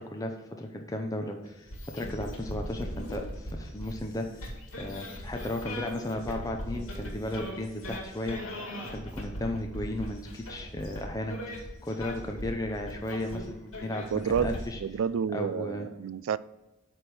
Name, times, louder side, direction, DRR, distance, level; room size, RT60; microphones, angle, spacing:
voice 1, 0.0-1.7 1.9-4.3 4.8-8.4 8.9-14.8 15.3-15.9, left 1 dB, 15° left, 0.6 m, -35 dB
sound 1, 1.4-14.7, equal, 90° left, 2.3 m, -40 dB
voice 2, 14.1-16.4, right 7 dB, 65° right, 0.3 m, -30 dB
9.0 x 3.5 x 6.2 m
head